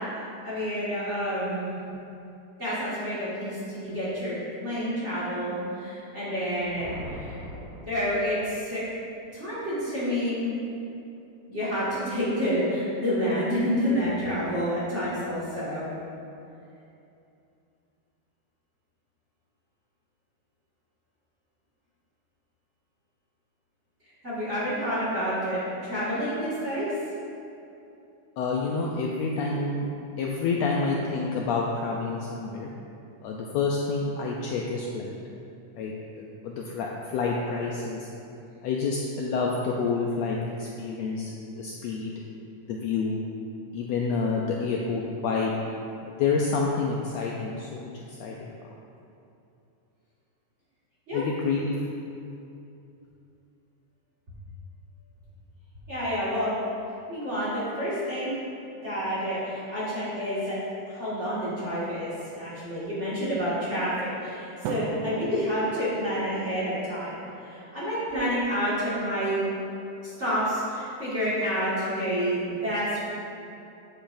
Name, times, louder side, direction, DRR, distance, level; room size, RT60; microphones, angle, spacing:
voice 1, 0.2-1.8 2.6-7.4 7.8-8.8 9.3-10.5 11.5-15.9 24.2-26.9 51.1-51.2 55.9-56.5 57.1-58.3 58.8-60.6 60.9-67.1 67.4-69.4 70.0-73.1, equal, 30° right, -11 dB, 1.6 m, -29 dB
Thunder, 6.4-8.7, equal, 65° right, 2.6 m, -42 dB
voice 2, 28.4-29.9 30.2-32.7 33.2-35.2 35.7-38.1 38.6-42.1 42.7-43.2 43.7-45.5 46.0-48.6 51.1-51.7, left 4 dB, 80° left, -1 dB, 1.6 m, -28 dB
Drum, 64.6-66.7, right 4 dB, 80° right, 1.8 m, -36 dB
8.6 x 7.5 x 2.6 m, 2.7 s
omnidirectional pair, 3.4 m